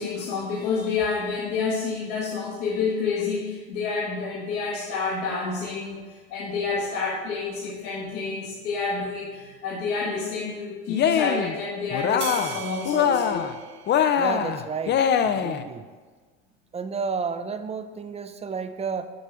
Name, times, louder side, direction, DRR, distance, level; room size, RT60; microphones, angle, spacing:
voice 1, 0.0-13.5, left 4 dB, 70° left, -6 dB, 1.8 m, -29 dB
Cheering, 10.9-11.5 11.9-12.6 12.8-13.5 13.9-15.6, left 8 dB, 35° left, 0.5 m, -23 dB
sound 1, 12.2-14.8, right 10 dB, 75° right, 0.8 m, -39 dB
voice 2, 14.2-15.8 16.7-19.1, right 5 dB, 20° right, 10 dB, 0.5 m, -31 dB
7.8 x 4.8 x 6.8 m, 1.4 s
supercardioid pair, 110°, 32 cm